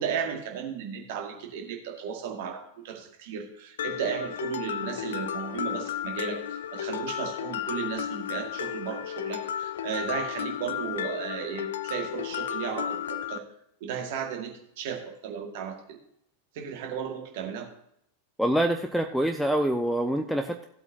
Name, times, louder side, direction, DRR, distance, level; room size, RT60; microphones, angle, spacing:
voice 1, 0.0-13.4 13.8-16.0 16.5-17.7, right 7 dB, 50° right, 3 dB, 2.0 m, -35 dB
Mallet percussion, 3.8-13.4, left 10 dB, 60° left, 0.5 m, -33 dB
voice 2, 18.4-20.7, right 1 dB, ahead, 5 dB, 0.6 m, -25 dB
16.0 x 8.0 x 2.8 m, 0.72 s
figure-of-eight pair, 90°, 0 cm